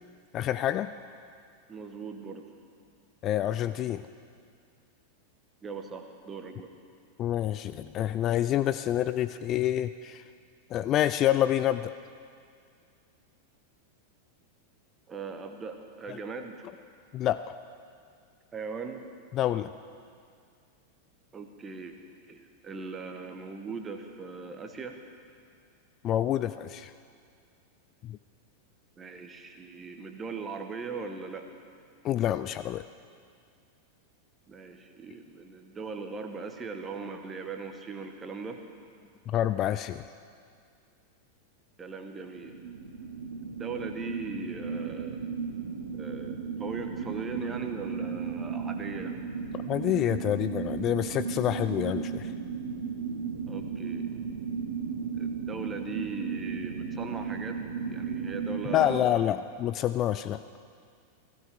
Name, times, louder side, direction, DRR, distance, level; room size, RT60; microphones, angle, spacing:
voice 1, 0.3-0.9 3.2-4.1 7.2-10.2 10.7-11.9 16.1-16.2 17.1-17.5 19.3-19.7 26.0-26.9 28.0-28.2 32.0-32.8 39.3-40.0 49.7-52.3 58.7-60.4, left 12 dB, 35° left, 12 dB, 0.3 m, -27 dB
voice 2, 1.7-2.5 5.6-6.7 15.1-16.7 18.5-19.0 21.3-21.9 22.3-25.0 29.0-31.5 34.5-38.6 41.8-42.6 43.4-45.3 45.9-49.2 53.5-54.1 55.2-57.6 57.9-59.3, right 4 dB, 20° right, 5 dB, 1.2 m, -39 dB
sound 1, 42.4-59.1, right 6 dB, 65° right, 1.1 m, -35 dB
15.5 x 15.5 x 3.5 m, 2.2 s
figure-of-eight pair, 90°, 0 cm